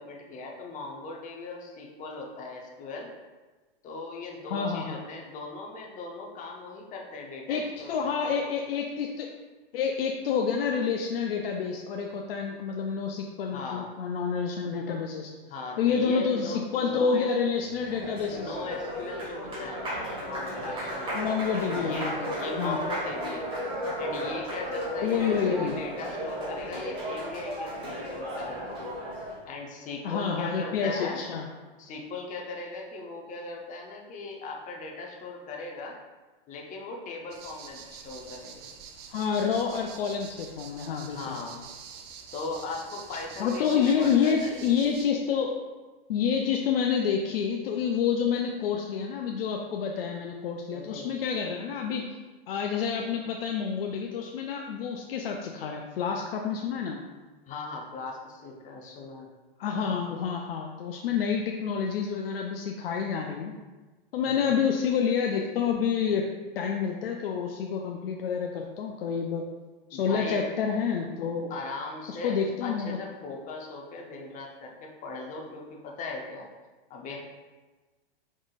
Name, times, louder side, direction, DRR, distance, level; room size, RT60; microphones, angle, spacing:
voice 1, 0.0-3.1 3.8-8.5 13.5-13.9 15.5-17.5 18.3-21.2 21.7-23.5 24.0-28.8 29.5-31.2 31.8-36.0 36.5-38.7 41.1-41.7 42.3-44.7 50.7-51.1 57.5-59.3 64.2-64.6 69.9-70.4 71.5-76.5 76.9-77.2, left 3 dB, 25° left, 0 dB, 0.8 m, -39 dB
voice 2, 4.5-5.0 7.5-9.3 9.7-15.3 15.8-18.5 21.1-22.3 22.6-22.8 25.0-25.8 30.0-31.5 39.1-41.4 43.4-45.6 46.1-52.2 52.5-57.0 59.6-63.5 64.1-66.3 66.6-69.5 69.9-71.5 72.1-73.0, left 6 dB, 75° left, 2 dB, 0.5 m, -28 dB
Applause, 17.6-29.4, equal, 15° right, 1.4 m, -34 dB
sound 1, 37.3-45.1, right 6 dB, 35° right, 0.5 m, -46 dB
5.2 x 3.6 x 2.4 m, 1.2 s
hypercardioid pair, 120°, 29 cm